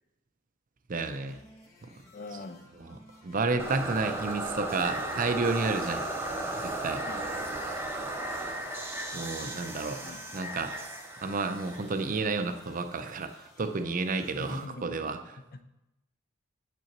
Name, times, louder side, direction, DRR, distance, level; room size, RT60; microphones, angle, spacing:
voice 1, 0.9-1.4 1.8-1.9 2.9-6.1 6.6-7.0 9.1-10.8 11.2-15.2, right 3 dB, 45° right, 8 dB, 0.5 m, -31 dB
sound 1, 1.0-14.7, left 2 dB, 15° left, 1.5 m, -57 dB
voice 2, 2.1-2.7 7.1-7.6 10.0-10.2 14.3-15.1 15.5-15.6, left 2 dB, 50° left, 9 dB, 0.6 m, -43 dB
sound 2, 3.6-12.6, right 1 dB, 15° right, 0.9 m, -35 dB
9.1 x 6.8 x 3.0 m, 0.93 s
head